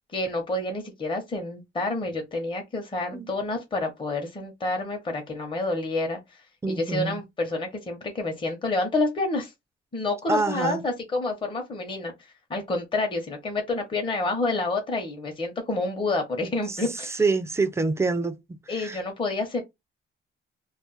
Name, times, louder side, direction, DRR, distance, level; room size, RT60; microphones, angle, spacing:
voice 1, 0.1-6.2 6.7-9.5 9.9-12.1 12.5-17.1 18.7-19.6, left 2 dB, 25° left, 0.9 m, -28 dB
voice 2, 6.6-7.2 10.3-10.8 16.7-16.8 17.1-19.0, right 3 dB, 15° right, 0.5 m, -26 dB
2.5 x 2.1 x 4.0 m
cardioid pair, 125°, 20 cm